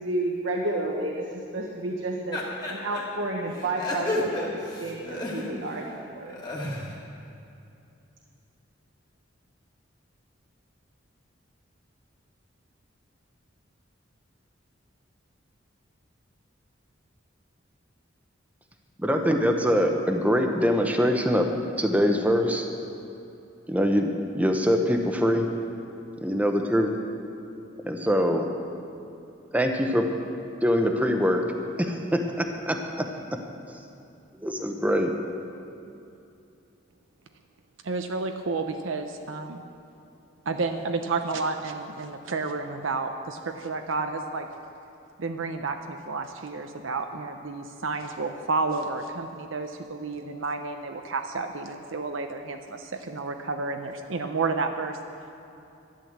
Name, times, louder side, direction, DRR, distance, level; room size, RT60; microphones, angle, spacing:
voice 1, 0.0-2.4 2.7-6.4, right 2 dB, 70° right, -1 dB, 1.3 m, -31 dB
sound 1, 2.3-3.0 3.5-5.8 6.2-7.0, left 1 dB, 20° left, 2.0 m, -32 dB
voice 2, 19.0-21.5 21.8-22.7 23.7-25.5 26.2-26.9 27.8-28.5 29.5-30.1 30.6-31.4 31.8-33.1 34.4-35.1, equal, 10° right, 4 dB, 1.0 m, -23 dB
voice 3, 37.8-39.6 40.5-44.5 45.2-55.0, right 3 dB, 85° right, 6 dB, 0.7 m, -31 dB
12.5 x 10.5 x 7.4 m, 2.7 s
head